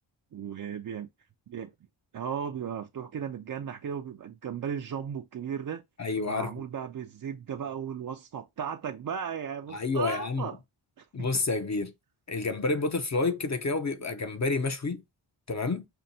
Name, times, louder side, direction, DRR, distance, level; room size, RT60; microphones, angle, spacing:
voice 1, 0.3-1.1 1.5-1.7 2.1-5.8 6.2-10.6 11.0-11.3, right 7 dB, 45° right, 0.5 m, -36 dB
voice 2, 6.0-6.5 9.7-10.5 11.1-11.9 12.3-15.0 15.5-15.9, left 3 dB, 35° left, 0.6 m, -29 dB
5.5 x 2.2 x 2.6 m
cardioid pair, 65°, 49 cm